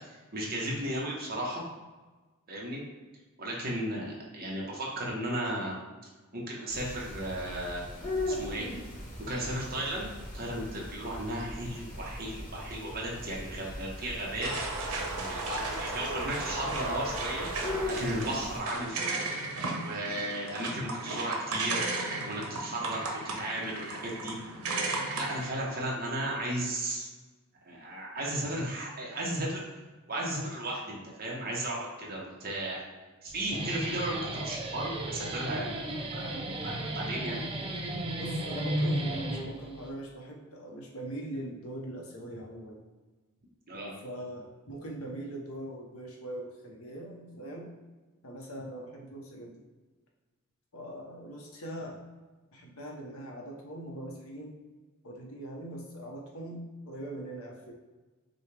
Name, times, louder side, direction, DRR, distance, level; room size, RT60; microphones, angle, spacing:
voice 1, 0.1-1.6 2.5-2.8 3.4-5.8 6.3-7.8 8.2-8.7 9.2-10.1 10.3-17.5 17.9-19.5 19.8-21.9 22.2-24.4 25.1-27.1 27.6-29.6 30.1-32.8 33.2-36.3 36.6-37.4 43.7-43.9, right 1 dB, 45° right, -3 dB, 1.1 m, -35 dB
sound 1, 6.7-18.6, left 1 dB, 35° left, 1.1 m, -39 dB
sound 2, 14.4-25.5, right 3 dB, 85° right, 0.9 m, -35 dB
Guitar, 33.3-39.9, right 1 dB, 25° right, 0.4 m, -34 dB
voice 2, 38.1-42.8 44.0-47.7 48.2-49.5 50.7-52.0 52.5-54.6 55.0-57.7, right 1 dB, 75° left, 0 dB, 1.0 m, -41 dB
6.3 x 2.3 x 3.3 m, 1.2 s
head